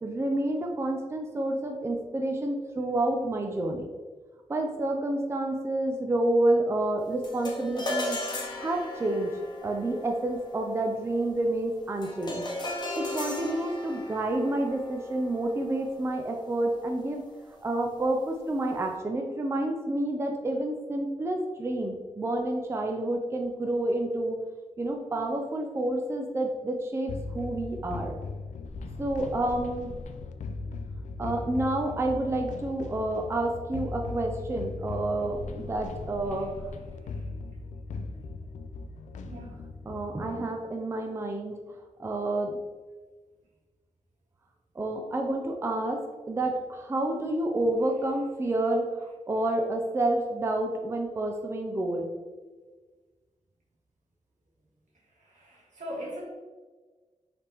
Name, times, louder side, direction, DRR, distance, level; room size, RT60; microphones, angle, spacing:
voice 1, 0.0-3.9 4.5-8.2 8.6-9.3 9.6-12.4 12.9-17.2 17.6-24.4 24.8-28.1 29.0-30.0 31.2-36.5 37.9-38.0 39.9-41.6 42.0-42.5 44.7-52.1, right 1 dB, 20° right, 2 dB, 0.4 m, -29 dB
sound 1, 7.2-16.7, left 1 dB, 35° left, 0.9 m, -37 dB
sound 2, 27.1-40.4, left 3 dB, 85° left, 0.4 m, -38 dB
voice 2, 39.2-39.6 55.1-56.2, equal, 85° right, -4 dB, 1.4 m, -41 dB
4.9 x 3.4 x 2.9 m, 1.4 s
wide cardioid pair, 130°, 12 cm